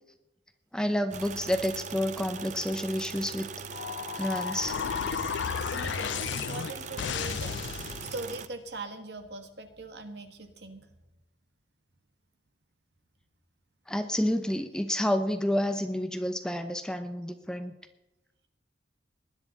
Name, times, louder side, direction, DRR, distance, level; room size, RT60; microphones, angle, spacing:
voice 1, 0.7-3.5 4.2-4.8 13.9-17.7, left 1 dB, 5° left, 7 dB, 0.8 m, -29 dB
sound 1, 1.1-8.5, right 6 dB, 40° right, 0.5 m, -40 dB
sound 2, 3.7-8.3, left 7 dB, 70° left, 0.4 m, -33 dB
voice 2, 5.7-10.9, right 2 dB, 60° right, 7 dB, 1.6 m, -41 dB
19.5 x 10.5 x 4.1 m, 0.94 s
head